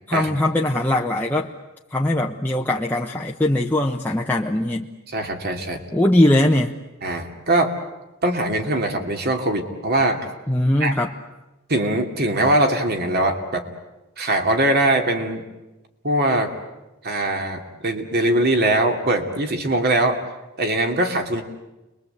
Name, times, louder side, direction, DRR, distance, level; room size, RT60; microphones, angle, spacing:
voice 1, 0.1-1.5 1.9-4.9 5.9-6.8 10.5-11.1, left 1 dB, 10° left, -1 dB, 0.9 m, -20 dB
voice 2, 5.1-5.8 7.0-7.7 8.2-10.2 10.8-10.9 11.7-13.6 14.2-15.4 16.0-16.5 17.0-20.2 20.6-21.4, right 1 dB, 50° right, 4 dB, 2.8 m, -21 dB
30.0 x 22.0 x 8.2 m, 1.0 s
head